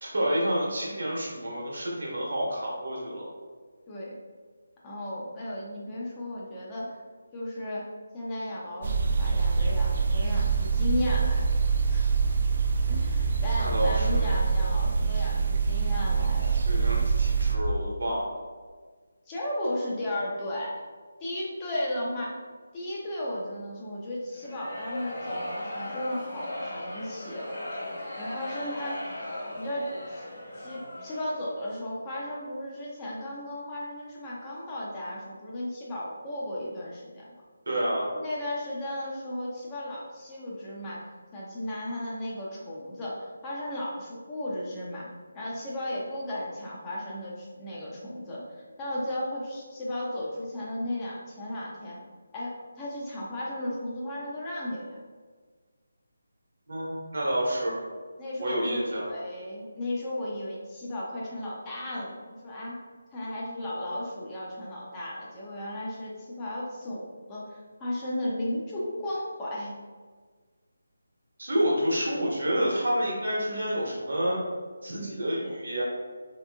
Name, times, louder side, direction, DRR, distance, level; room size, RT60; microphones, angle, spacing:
voice 1, 0.0-3.3 13.6-14.3 16.7-18.3 37.7-38.1 56.7-57.7 58.4-59.1 71.4-74.4 74.8-75.8, equal, 65° right, -4 dB, 1.1 m, -29 dB
voice 2, 4.8-7.0 7.3-7.9 8.1-11.5 11.9-12.1 12.9-16.6 19.3-20.8 21.2-22.4 22.7-27.5 28.2-29.0 29.6-30.3 30.6-37.3 38.1-41.1 41.3-48.4 48.8-52.0 52.3-55.0 58.2-62.8 63.1-69.7 74.9-75.6, left 1 dB, 20° left, -6 dB, 0.5 m, -35 dB
sound 1, 8.8-17.6, right 5 dB, 50° right, 0.3 m, -25 dB
sound 2, 24.3-31.6, left 1 dB, 50° left, 1.2 m, -37 dB
3.4 x 2.8 x 2.2 m, 1.5 s
figure-of-eight pair, 160°, 0 cm